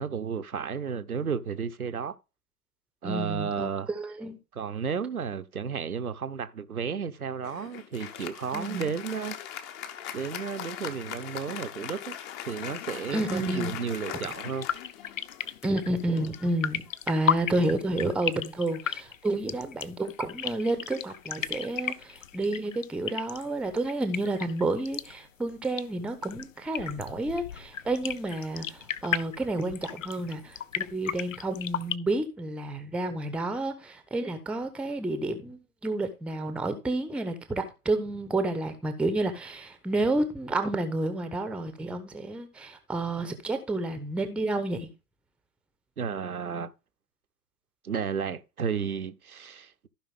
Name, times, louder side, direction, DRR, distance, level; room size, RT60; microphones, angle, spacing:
voice 1, 0.0-2.1 3.0-3.9 4.5-9.4 10.1-12.2 12.5-14.7 46.0-46.7 47.8-49.7, right 6 dB, 70° right, 1.2 m, -32 dB
voice 2, 3.0-4.4 8.5-8.9 13.1-13.7 15.6-44.9, right 2 dB, 5° right, 1.0 m, -30 dB
Applause, 7.4-17.2, left 9 dB, 25° left, 1.1 m, -40 dB
sound 1, 14.2-32.0, left 9 dB, 60° left, 0.8 m, -35 dB
15.0 x 5.6 x 3.6 m
figure-of-eight pair, 110°, 45 cm